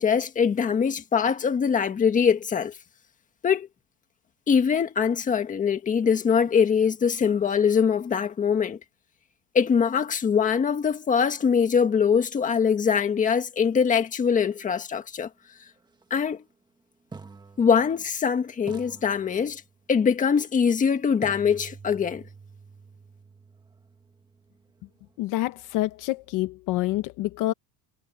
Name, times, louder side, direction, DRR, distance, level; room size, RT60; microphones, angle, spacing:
voice 1, 0.0-2.7 3.4-3.7 4.5-8.8 9.5-15.3 16.1-16.4 17.6-19.6 19.9-22.2, left 6 dB, 20° left, 1.7 m, -23 dB
sound 1, 16.0-16.2 17.1-18.3 18.7-19.9 21.2-25.1, right 4 dB, 10° right, 2.0 m, -47 dB
voice 2, 25.2-27.5, left 17 dB, 55° left, 1.1 m, -27 dB
cardioid pair, 165°, 37 cm